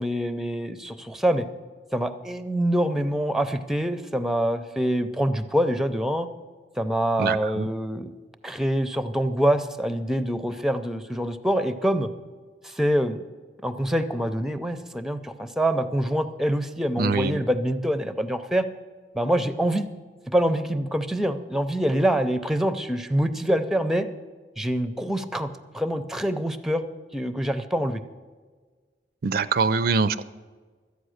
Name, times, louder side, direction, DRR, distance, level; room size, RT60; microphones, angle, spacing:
voice 1, 0.0-1.4 1.9-6.3 6.8-8.1 8.4-12.1 12.6-13.3 13.6-18.7 19.1-19.9 20.3-24.1 24.6-26.8 27.1-28.0, equal, ahead, 11 dB, 0.5 m, -25 dB
voice 2, 7.2-7.7 17.0-17.4 29.2-30.2, right 4 dB, 55° right, 15 dB, 0.4 m, -24 dB
13.0 x 8.4 x 6.4 m, 1.4 s
head